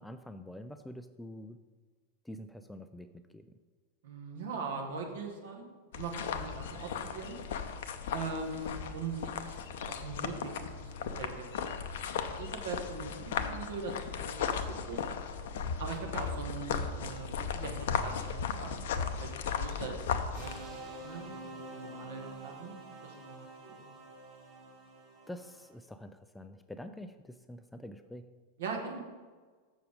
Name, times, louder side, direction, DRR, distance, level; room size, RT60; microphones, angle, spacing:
voice 1, 0.0-1.6 2.2-3.5 25.3-28.3, left 1 dB, 5° left, 9 dB, 0.4 m, -46 dB
voice 2, 4.0-7.4 8.1-10.5 10.8-11.6 11.9-14.0 14.4-15.1 15.8-20.1 20.4-20.5 21.0-22.7 23.0-23.8 28.6-29.0, right 4 dB, 60° right, 2 dB, 1.5 m, -41 dB
sound 1, 5.9-20.6, left 6 dB, 55° left, 0.6 m, -36 dB
sound 2, 20.3-25.7, right 2 dB, 30° right, 2.6 m, -47 dB
6.8 x 6.3 x 5.1 m, 1.5 s
figure-of-eight pair, 90°, 0 cm